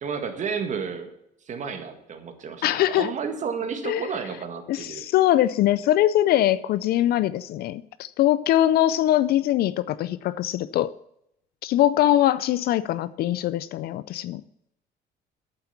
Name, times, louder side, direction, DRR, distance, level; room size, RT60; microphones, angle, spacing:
voice 1, 0.0-1.1 1.5-5.1, right 6 dB, 45° right, 1.8 m, -31 dB
voice 2, 2.6-3.1 3.8-4.1 4.7-10.9 11.6-14.4, left 13 dB, 65° left, 0.4 m, -22 dB
8.9 x 7.7 x 7.0 m
cardioid pair, 110°, 17 cm